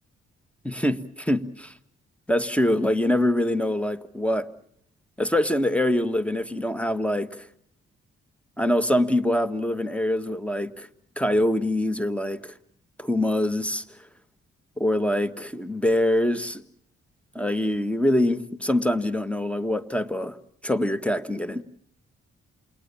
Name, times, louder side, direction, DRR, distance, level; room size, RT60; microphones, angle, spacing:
voice 1, 0.6-1.7 2.3-4.5 5.2-7.5 8.6-10.9 11.2-12.5 13.0-13.8 14.8-16.6 17.3-20.4 20.6-21.6, left 1 dB, 5° left, 1.7 m, -24 dB
28.5 x 21.5 x 7.2 m
hypercardioid pair, 40°, 29 cm